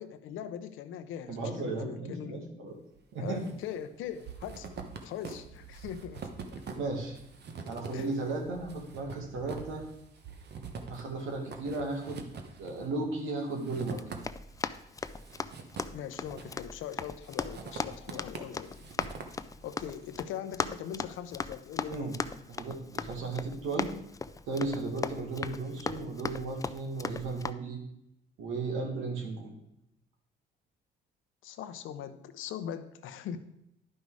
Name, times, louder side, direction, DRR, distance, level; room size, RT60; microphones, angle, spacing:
voice 1, 0.0-2.4 3.2-4.7 5.0-6.3 7.9-8.1 15.9-18.9 19.6-22.2 24.5-24.8 26.0-26.1 31.4-33.4, left 9 dB, 85° left, 10 dB, 0.7 m, -41 dB
voice 2, 1.3-2.8 3.1-3.4 6.8-7.2 7.7-9.8 10.9-12.2 12.6-14.0 21.9-22.1 22.5-23.9 24.5-27.8 28.4-29.5, right 3 dB, 90° right, 2 dB, 2.1 m, -35 dB
sound 1, 3.0-3.6 3.8-14.6 15.0-16.8 17.2-19.9, right 5 dB, 55° right, 1.2 m, -45 dB
Run, 13.9-27.5, left 4 dB, 15° left, 0.4 m, -39 dB
11.0 x 5.5 x 4.8 m, 0.82 s
cardioid pair, 90°, 20 cm